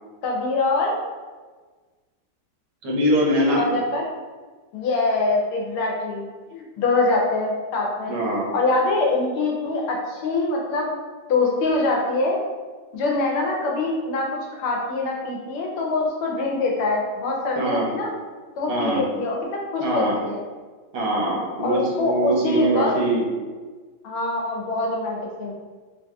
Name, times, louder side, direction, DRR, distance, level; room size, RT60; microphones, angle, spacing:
voice 1, 0.2-1.0 3.5-4.1 4.7-8.1 8.5-10.9 11.3-12.4 12.9-18.1 18.6-20.4 21.6-22.9 24.0-25.5, left 2 dB, 85° left, -1 dB, 1.6 m, -24 dB
voice 2, 2.8-3.6 8.1-8.5 17.6-17.9 18.7-19.0 19.8-20.2 20.9-23.2, right 1 dB, 75° right, -3 dB, 1.6 m, -23 dB
4.7 x 2.6 x 2.3 m, 1.4 s
omnidirectional pair, 2.3 m